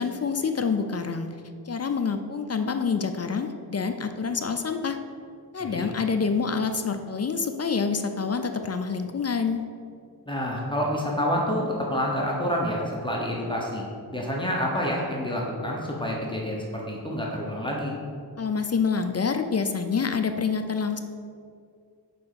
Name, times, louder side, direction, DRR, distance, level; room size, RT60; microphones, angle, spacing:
voice 1, 0.0-1.3 1.7-5.0 5.5-9.6 18.4-21.0, left 5 dB, 40° left, 7 dB, 0.4 m, -27 dB
voice 2, 10.3-13.8 14.1-17.9, equal, 10° left, -3 dB, 1.0 m, -28 dB
6.1 x 5.0 x 6.2 m, 2.3 s
wide cardioid pair, 125°, 40 cm